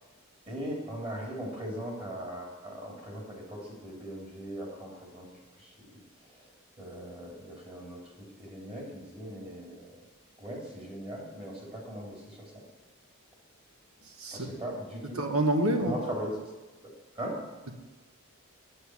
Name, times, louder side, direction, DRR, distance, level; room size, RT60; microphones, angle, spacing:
voice 1, 0.5-5.3 5.6-5.7 6.3-6.4 6.8-8.0 8.4-10.0 10.4-12.6 14.3-15.2 15.8-16.4 17.1-17.4, equal, 25° right, -2 dB, 3.1 m, -39 dB
voice 2, 15.2-16.0, right 1 dB, 80° right, 5 dB, 1.3 m, -27 dB
8.1 x 7.8 x 7.8 m, 1.2 s
head